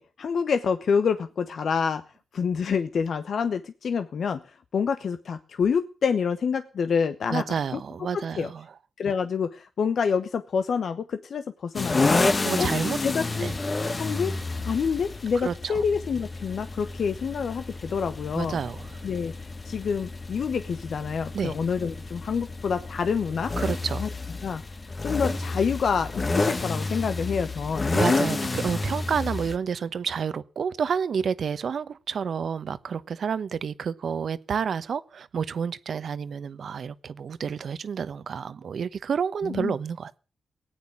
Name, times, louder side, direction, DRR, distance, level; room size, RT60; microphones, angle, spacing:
voice 1, 0.0-2.0 2.3-7.8 8.1-8.5 9.0-12.3 12.6-12.7 13.0-13.5 14.0-14.3 14.6-18.6 19.0-19.3 19.6-23.5 24.0-24.1 24.4-24.6 25.0-27.9 39.4-39.8, left 6 dB, 75° left, 1.0 m, -27 dB
voice 2, 7.3-8.7 12.4-13.0 13.4-13.6 15.4-15.8 18.3-19.0 21.3-21.6 23.6-24.1 27.9-40.2, right 6 dB, 75° right, 1.0 m, -29 dB
sound 1, 11.7-29.6, left 3 dB, 35° left, 1.4 m, -29 dB
18.5 x 9.3 x 8.4 m
cardioid pair, 70°, 0 cm